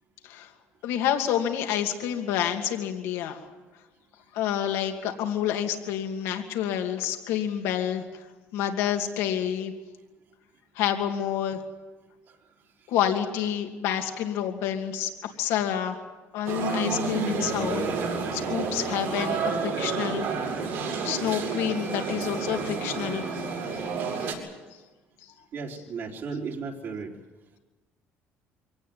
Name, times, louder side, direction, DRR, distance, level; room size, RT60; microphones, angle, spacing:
voice 1, 0.8-3.4 4.3-8.0 8.5-9.7 10.8-11.6 12.9-16.0 16.3-17.8 18.3-20.3 21.0-23.3, left 10 dB, 85° left, 4 dB, 2.6 m, -28 dB
sound 1, 16.5-24.3, right 4 dB, 85° right, 6.0 m, -30 dB
voice 2, 25.5-27.1, right 5 dB, 60° right, -1 dB, 3.9 m, -35 dB
24.0 x 18.0 x 9.5 m, 1.2 s
cardioid pair, 95°, 5 cm